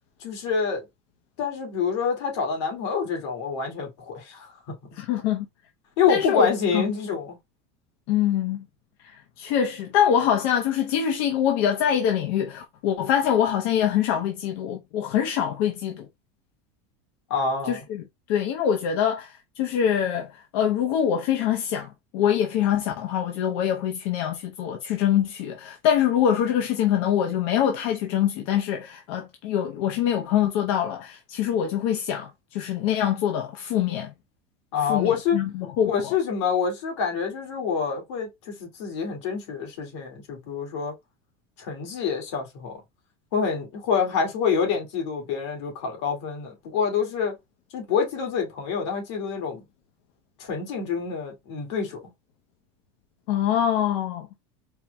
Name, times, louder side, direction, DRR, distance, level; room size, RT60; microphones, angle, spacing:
voice 1, 0.2-0.8 1.4-4.5 6.0-7.4 17.3-17.8 34.7-35.4 35.8-40.9 41.6-42.7 43.3-47.3 47.7-49.6 50.4-52.0, left 6 dB, 75° left, 2.0 m, -27 dB
voice 2, 5.0-5.5 6.1-6.5 6.7-6.8 8.1-8.6 9.0-16.1 17.7-34.1 34.8-36.1 53.3-54.3, left 9 dB, 55° left, 0.7 m, -24 dB
4.4 x 2.1 x 3.3 m
cardioid pair, 180°, 15 cm